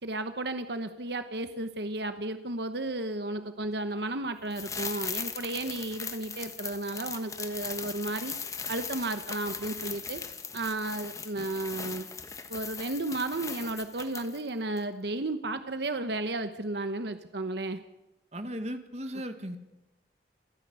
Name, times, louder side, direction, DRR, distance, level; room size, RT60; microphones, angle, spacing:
voice 1, 0.0-8.3 8.7-10.2 10.5-12.1 12.5-17.8, right 2 dB, 75° right, 9 dB, 1.1 m, -33 dB
sound 1, 4.5-14.5 14.8-14.9, left 5 dB, 20° left, 1.2 m, -39 dB
voice 2, 18.3-19.6, equal, 40° right, 7 dB, 2.0 m, -36 dB
27.5 x 10.5 x 9.5 m, 0.96 s
head